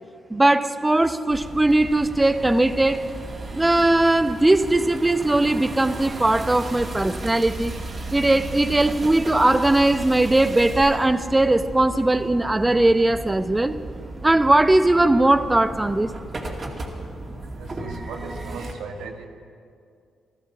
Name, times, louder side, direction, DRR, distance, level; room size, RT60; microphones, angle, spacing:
voice 1, 0.3-3.1 3.5-7.7 8.1-13.7 14.2-16.1, right 2 dB, 20° right, 12 dB, 0.9 m, -19 dB
sound 1, 1.3-18.7, right 2 dB, 40° right, 2.6 m, -35 dB
voice 2, 17.5-19.3, right 4 dB, 75° right, 4 dB, 1.5 m, -37 dB
15.0 x 13.0 x 7.1 m, 2.3 s
hypercardioid pair, 40°, 0 cm